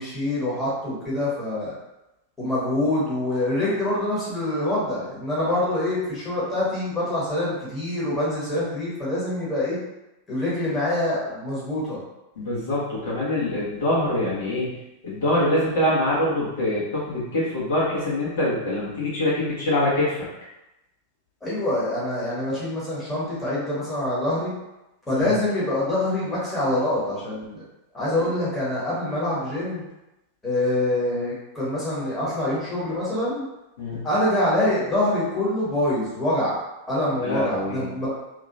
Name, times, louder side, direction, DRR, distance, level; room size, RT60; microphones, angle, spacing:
voice 1, 0.0-1.7 2.4-9.8 10.3-12.0 21.4-24.5 25.1-27.6 27.9-29.8 30.4-33.5 34.0-36.5 36.9-38.1, left 1 dB, 15° left, -8 dB, 1.4 m, -25 dB
voice 2, 12.3-14.7 15.0-20.3 25.1-25.3 33.8-34.0 37.2-37.9, left 1 dB, 60° left, -8 dB, 1.3 m, -24 dB
2.9 x 2.9 x 2.6 m, 0.95 s
figure-of-eight pair, 90°, 0 cm